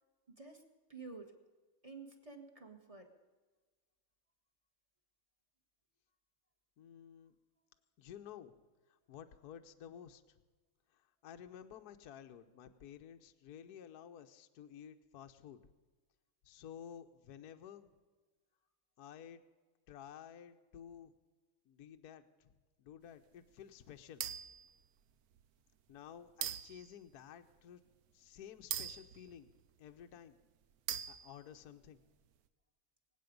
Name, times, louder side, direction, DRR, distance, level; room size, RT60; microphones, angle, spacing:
voice 1, 0.3-0.6 0.9-1.3 1.8-3.1, right 4 dB, 20° right, 4 dB, 1.3 m, -51 dB
voice 2, 6.8-7.4 8.0-8.5 8.9-10.2 10.9-15.6 16.4-17.9 19.0-19.4 19.9-21.1 21.6-22.5 22.8-24.2 25.9-27.8 28.1-29.5 29.8-30.4 31.1-32.0, left 9 dB, 60° left, 7 dB, 1.1 m, -53 dB
sound 1, 24.2-24.7 25.4-25.5 26.4-26.9 28.7-29.9 30.9-31.5, right 10 dB, 80° right, 0.8 m, -41 dB
25.0 x 8.7 x 5.2 m, 1.3 s
omnidirectional pair, 2.4 m